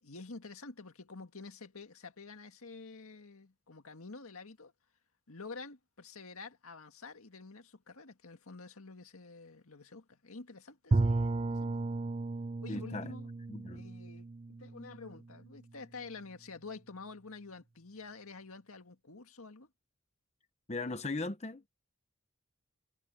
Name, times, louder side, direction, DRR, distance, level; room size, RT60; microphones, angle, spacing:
voice 1, 0.0-4.7 5.3-11.9 12.6-13.3 13.7-14.3 14.6-19.7, left 3 dB, 80° left, 1.9 m, -49 dB
Bowed string instrument, 10.9-15.7, right 3 dB, 25° right, 0.5 m, -34 dB
voice 2, 12.7-13.1 13.5-13.8 20.7-21.7, left 3 dB, 30° left, 0.9 m, -38 dB
head